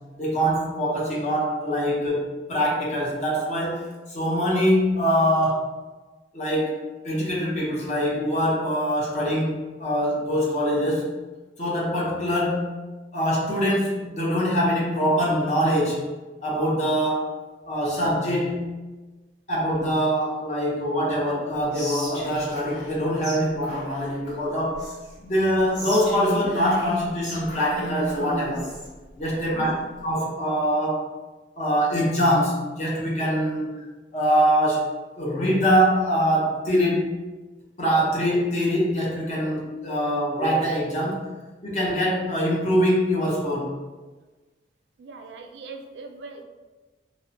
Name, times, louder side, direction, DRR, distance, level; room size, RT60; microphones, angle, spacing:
voice 1, 0.2-5.6 6.3-6.8 7.0-11.1 11.6-12.8 13.1-16.0 16.4-17.4 17.7-18.6 19.5-24.9 25.2-28.7 29.2-29.7 30.0-31.0 31.6-33.8 34.1-34.9 35.2-37.1 37.8-41.3 41.6-43.8, equal, 40° left, -5 dB, 0.6 m, -23 dB
Whispering, 21.7-23.0 23.2-23.4 23.6-25.2 25.7-28.9, equal, 60° left, 1.5 m, -34 dB
voice 2, 29.3-29.8 45.0-46.4, right 3 dB, 70° right, 4 dB, 0.3 m, -41 dB
2.6 x 2.1 x 2.6 m, 1.2 s
head